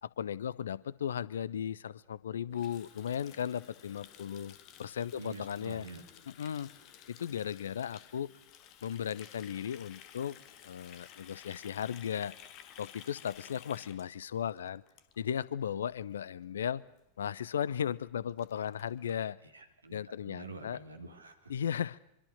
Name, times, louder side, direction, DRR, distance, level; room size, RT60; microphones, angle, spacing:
voice 1, 0.0-5.9 6.4-6.7 7.1-8.3 8.8-10.4 10.6-12.3 12.8-14.8 15.2-16.8 17.2-19.4 19.9-20.8 21.5-22.0, left 8 dB, 65° left, 21 dB, 0.9 m, -36 dB
Water tap faucet, 2.5-15.5 15.8-16.1 16.4-16.7 17.0-17.1 17.3-17.4 17.8-17.9 18.1-19.1, left 10 dB, 40° left, 2.1 m, -55 dB
voice 2, 5.1-6.0 19.4-20.0 20.2-21.5, right 3 dB, 80° right, 6 dB, 3.6 m, -47 dB
25.0 x 24.5 x 6.5 m, 0.83 s
figure-of-eight pair, 90°, 0 cm